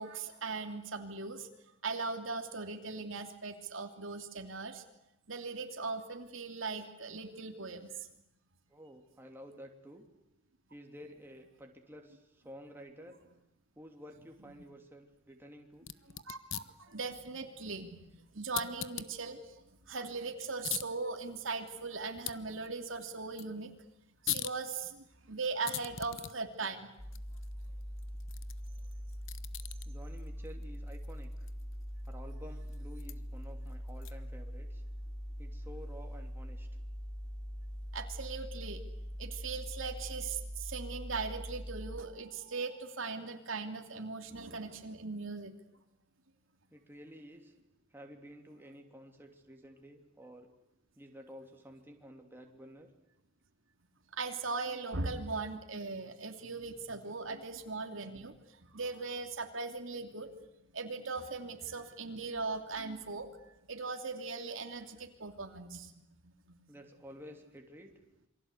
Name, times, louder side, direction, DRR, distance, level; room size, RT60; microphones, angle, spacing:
voice 1, 0.0-1.5 1.8-4.8 5.3-8.1 16.1-18.1 18.3-23.7 24.2-26.9 37.9-38.8 39.2-45.5 54.1-58.4 58.7-60.3 60.7-63.3 63.7-65.9 66.2-66.5, right 4 dB, 65° right, 5 dB, 2.8 m, -39 dB
voice 2, 8.7-10.0 10.7-13.2 13.7-15.9 16.7-16.8 29.8-31.5 32.0-34.8 35.4-36.7 46.7-47.5 47.9-50.5 51.0-52.9 66.7-67.9, equal, 10° right, 2 dB, 3.1 m, -52 dB
sound 1, 15.7-34.4, left 12 dB, 65° left, 1.1 m, -45 dB
sound 2, 27.0-42.0, equal, 35° left, 3.7 m, -42 dB
28.0 x 24.0 x 8.3 m, 0.83 s
head